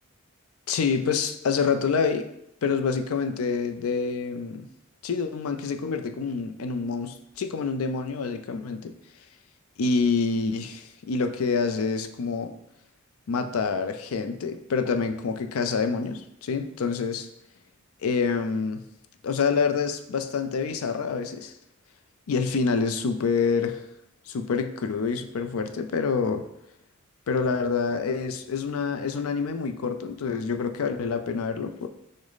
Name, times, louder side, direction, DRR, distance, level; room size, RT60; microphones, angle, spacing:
voice 1, 0.7-2.2 2.6-4.7 5.0-8.9 9.8-12.6 13.3-17.3 18.0-18.8 19.2-21.5 22.3-23.8 24.3-26.5 27.3-31.9, left 5 dB, 90° left, 7 dB, 0.4 m, -27 dB
6.1 x 2.1 x 3.9 m, 0.80 s
head